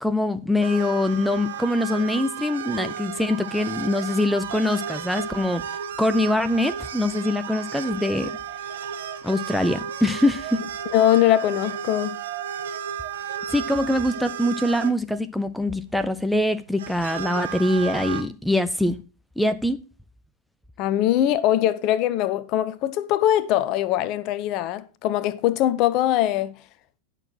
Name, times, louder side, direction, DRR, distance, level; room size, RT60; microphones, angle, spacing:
voice 1, 0.0-5.6 6.0-8.3 9.2-10.6 13.5-19.0 19.4-19.8, left 1 dB, ahead, 0.5 m, -23 dB
sound 1, 0.6-14.9 15.9-16.0 16.7-18.2, right 8 dB, 60° right, 1.0 m, -33 dB
voice 2, 10.9-12.2 20.8-26.6, left 12 dB, 40° left, 0.7 m, -22 dB
10.5 x 6.6 x 4.4 m
figure-of-eight pair, 90°, 0 cm